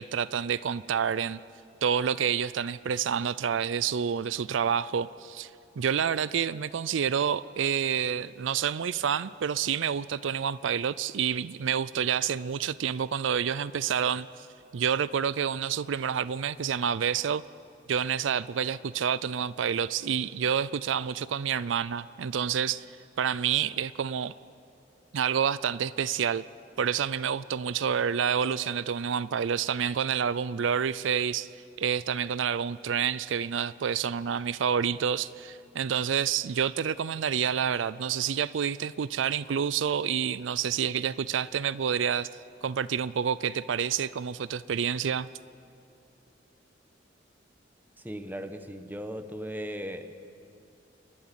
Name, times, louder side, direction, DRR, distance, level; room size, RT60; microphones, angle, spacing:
voice 1, 0.0-1.4 1.8-5.5 5.8-14.5 14.7-17.4 17.9-22.9 23.2-24.3 25.1-26.4 26.8-31.5 31.8-42.3 42.6-45.3, right 7 dB, 80° right, 18 dB, 0.4 m, -28 dB
voice 2, 48.0-50.1, equal, 10° right, 9 dB, 1.1 m, -37 dB
29.5 x 13.0 x 9.8 m, 2.6 s
head